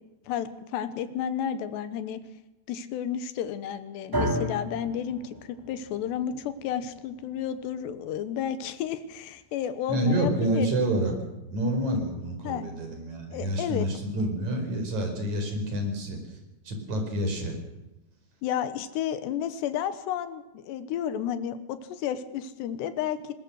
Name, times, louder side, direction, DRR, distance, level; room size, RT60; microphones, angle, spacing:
voice 1, 0.3-2.2 2.7-10.7 12.4-12.6 13.3-13.9 18.4-23.3, left 9 dB, 70° left, 12 dB, 3.0 m, -32 dB
sound 1, 4.1-12.4, equal, 15° right, 0.8 m, -37 dB
voice 2, 9.9-11.1 11.4-16.2 16.7-17.5, right 1 dB, 35° right, 4 dB, 5.7 m, -28 dB
23.0 x 20.5 x 6.4 m, 1.0 s
omnidirectional pair, 5.7 m